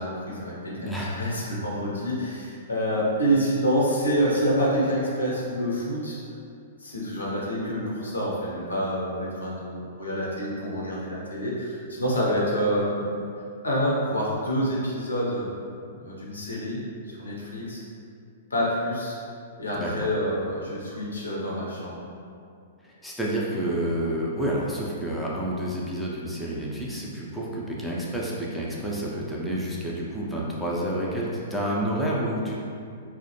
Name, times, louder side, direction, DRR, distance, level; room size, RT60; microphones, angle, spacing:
voice 1, 0.0-6.2 6.8-13.1 13.6-15.5 15.9-16.8 17.1-17.8 18.5-19.2 19.6-22.1, equal, 80° left, -5 dB, 0.6 m, -27 dB
voice 2, 0.8-1.2 19.8-20.1 22.8-32.6, right 1 dB, 5° left, -5 dB, 0.4 m, -29 dB
2.3 x 2.1 x 2.8 m, 2.4 s
figure-of-eight pair, 110°, 0 cm